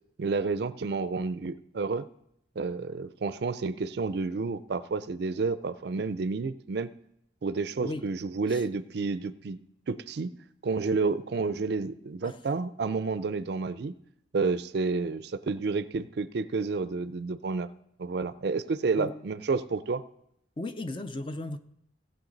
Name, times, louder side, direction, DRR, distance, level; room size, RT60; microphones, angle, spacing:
voice 1, 0.2-2.1 2.6-6.9 7.4-9.6 9.9-10.3 10.6-13.9 14.3-17.7 18.0-20.0, right 4 dB, 60° right, 0.4 m, -30 dB
voice 2, 7.8-8.1 8.5-8.6 12.2-12.4 19.0-19.2 20.6-21.6, left 2 dB, 25° left, 0.5 m, -36 dB
16.5 x 7.6 x 3.9 m
head